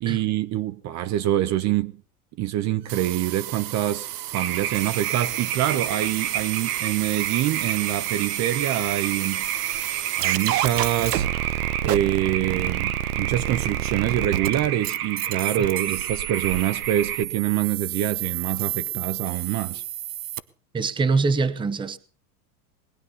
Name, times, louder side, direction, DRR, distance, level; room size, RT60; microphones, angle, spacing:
voice 1, 0.0-1.9 2.4-9.4 10.2-19.8, right 13 dB, 35° right, 0.8 m, -25 dB
sound 1, 2.9-20.4, right 12 dB, 90° right, 1.1 m, -30 dB
sound 2, 4.3-17.2, right 11 dB, 75° right, 1.7 m, -30 dB
voice 2, 20.7-22.0, right 4 dB, 10° right, 0.9 m, -24 dB
20.5 x 9.7 x 7.0 m
supercardioid pair, 130°, 45 cm